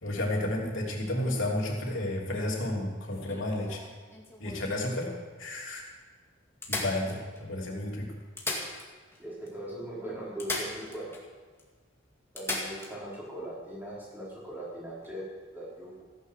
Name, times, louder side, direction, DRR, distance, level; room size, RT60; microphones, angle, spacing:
voice 1, 0.0-3.8 4.4-5.1 5.4-5.9 6.7-8.1, left 1 dB, 80° left, -2 dB, 3.2 m, -31 dB
sound 1, 3.1-4.7 5.4-5.5 5.8-5.9 6.6-7.6 8.2-9.2 9.5-9.6 10.4-11.3 11.6-11.7 12.4-12.9 14.9-15.1, left 2 dB, 10° left, 2.1 m, -37 dB
voice 2, 9.2-11.1 12.3-16.0, right 1 dB, 10° right, -7 dB, 4.6 m, -40 dB
15.0 x 10.5 x 6.6 m, 1.4 s
head